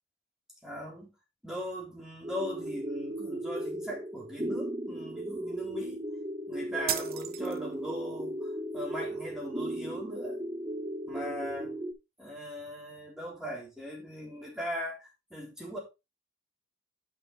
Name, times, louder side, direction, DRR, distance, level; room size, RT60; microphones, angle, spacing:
voice 1, 0.6-1.1 1.4-6.0 6.5-10.4 11.1-11.7 12.2-15.8, equal, 5° right, 3.5 m, -39 dB
sound 1, 2.2-11.9, right 1 dB, 20° right, 0.9 m, -36 dB
sound 2, 6.9-7.9, right 10 dB, 50° right, 0.9 m, -35 dB
10.5 x 5.8 x 3.2 m
head